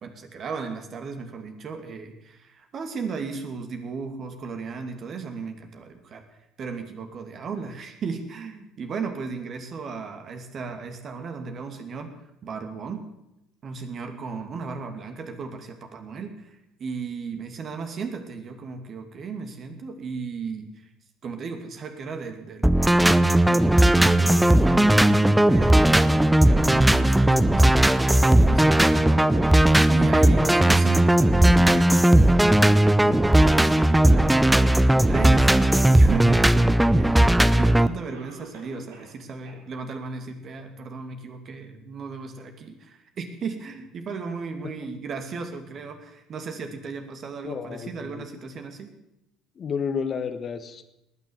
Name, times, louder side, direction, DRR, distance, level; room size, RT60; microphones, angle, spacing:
voice 1, 0.0-6.2 6.6-12.1 12.4-13.1 13.6-20.9 21.2-22.8 23.5-37.3 37.5-48.9, right 5 dB, 45° right, 6 dB, 2.5 m, -35 dB
sound 1, 22.6-37.9, right 1 dB, 5° right, 0.7 m, -17 dB
Cough, 38.1-39.2 39.4-39.6 40.1-40.2 40.8-40.9, right 4 dB, 75° right, 4.1 m, -46 dB
voice 2, 47.4-48.2 49.6-50.8, left 6 dB, 40° left, 10 dB, 1.4 m, -31 dB
19.0 x 9.9 x 7.3 m, 0.88 s
figure-of-eight pair, 60°, 0 cm